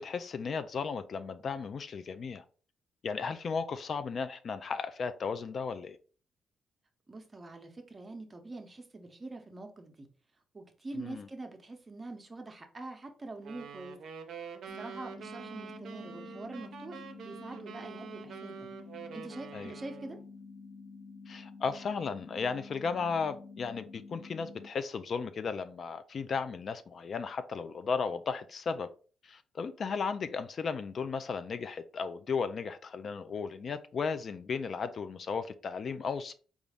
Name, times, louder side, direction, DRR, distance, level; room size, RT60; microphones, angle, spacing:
voice 1, 0.0-2.4 3.0-6.0 10.9-11.3 19.5-19.7 21.3-28.9 29.2-36.3, left 5 dB, 50° left, 0.3 m, -35 dB
voice 2, 7.1-10.1 10.5-14.0 14.8-18.7 19.1-20.2, right 2 dB, 25° right, 0.7 m, -44 dB
sound 1, 13.4-20.3, right 7 dB, 65° right, 0.5 m, -46 dB
sound 2, 14.7-24.7, left 4 dB, 85° left, 0.8 m, -49 dB
3.9 x 2.4 x 3.4 m
cardioid pair, 90°, 0 cm